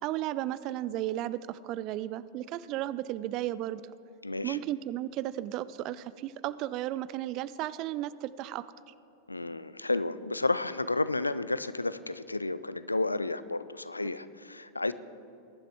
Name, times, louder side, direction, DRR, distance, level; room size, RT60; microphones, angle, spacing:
voice 1, 0.0-3.8 4.4-8.7, right 14 dB, 40° right, 17 dB, 0.4 m, -34 dB
voice 2, 4.2-4.6 9.3-14.9, left 2 dB, 80° left, 15 dB, 0.4 m, -31 dB
20.5 x 11.0 x 3.4 m, 2.8 s
figure-of-eight pair, 90°, 0 cm